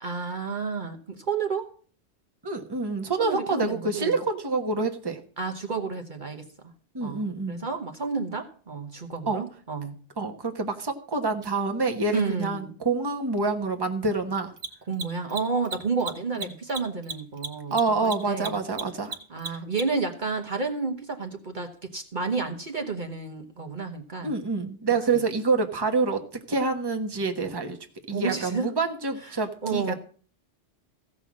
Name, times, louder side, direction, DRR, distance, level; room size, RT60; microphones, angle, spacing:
voice 1, 0.0-1.7 3.2-4.1 5.4-6.5 7.0-9.9 12.1-12.7 14.9-18.6 19.3-24.3 25.1-25.2 28.1-28.7 29.2-29.9, right 4 dB, 45° right, 3 dB, 1.3 m, -31 dB
voice 2, 2.4-5.2 6.9-7.6 9.3-9.4 10.2-14.5 16.4-16.5 17.7-19.2 19.5-19.6 24.2-27.8 28.1-29.9, right 3 dB, 20° right, 4 dB, 1.2 m, -27 dB
Mechanisms, 11.4-11.5 14.5-20.1, right 4 dB, 75° right, 1.7 m, -35 dB
15.5 x 5.6 x 7.4 m, 0.43 s
omnidirectional pair, 1.2 m